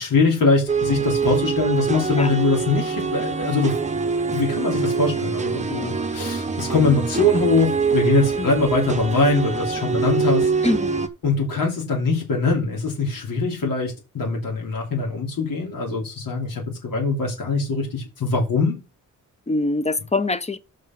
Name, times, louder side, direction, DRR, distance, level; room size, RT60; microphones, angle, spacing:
voice 1, 0.0-3.8 4.3-10.5 11.2-18.8, left 3 dB, 80° left, 3.1 m, -22 dB
sound 1, 0.7-11.1, right 5 dB, 20° right, 0.9 m, -24 dB
voice 2, 10.6-11.1 19.5-20.6, left 2 dB, 20° left, 0.8 m, -24 dB
6.5 x 5.3 x 5.9 m
wide cardioid pair, 150°, 33 cm